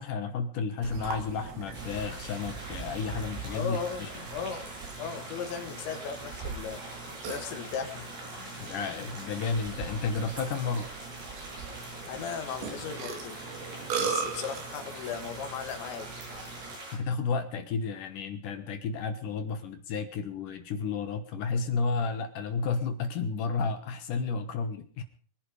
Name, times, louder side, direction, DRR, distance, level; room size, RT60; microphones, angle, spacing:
voice 1, 0.0-3.8 8.6-10.9 16.9-25.0, left 5 dB, 65° left, 8 dB, 2.3 m, -32 dB
Burping eructation, 0.8-16.8, right 5 dB, 85° right, 5.0 m, -40 dB
sound 1, 1.7-17.0, right 1 dB, 65° right, 9.3 m, -44 dB
voice 2, 3.5-4.7 5.0-6.8 7.3-8.1 8.4-8.7 12.1-13.4 14.0-16.1 24.8-24.9, left 7 dB, 90° left, 6 dB, 4.2 m, -37 dB
24.0 x 10.5 x 5.0 m, 0.43 s
omnidirectional pair, 5.0 m